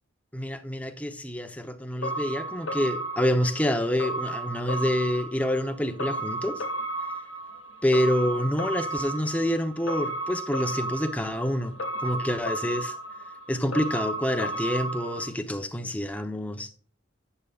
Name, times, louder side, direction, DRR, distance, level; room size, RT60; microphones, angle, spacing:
voice 1, 0.3-6.6 7.8-12.9 13.5-16.7, equal, 5° left, 0.8 m, -27 dB
sound 1, 2.0-15.3, right 1 dB, 75° left, 1.3 m, -33 dB
10.5 x 9.2 x 2.4 m
head